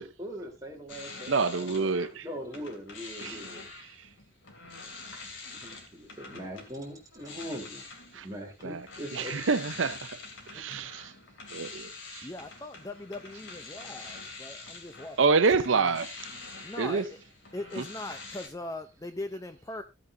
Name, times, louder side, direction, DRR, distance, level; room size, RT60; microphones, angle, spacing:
voice 1, 0.2-3.7 5.5-7.9 8.2-9.3 10.5-10.6, equal, 20° right, 3.6 m, -41 dB
sound 1, 0.9-2.2 2.5-18.5, left 3 dB, 85° left, 2.8 m, -46 dB
voice 2, 1.3-2.2 3.2-3.4 8.1-8.2 8.6-8.8 9.1-10.2 10.5-11.1 11.5-12.3 15.2-16.1 16.8-17.0, right 4 dB, 85° right, 0.7 m, -27 dB
voice 3, 12.2-16.0 16.4-17.2 17.5-19.8, left 2 dB, 15° left, 0.6 m, -40 dB
14.5 x 8.7 x 2.7 m
head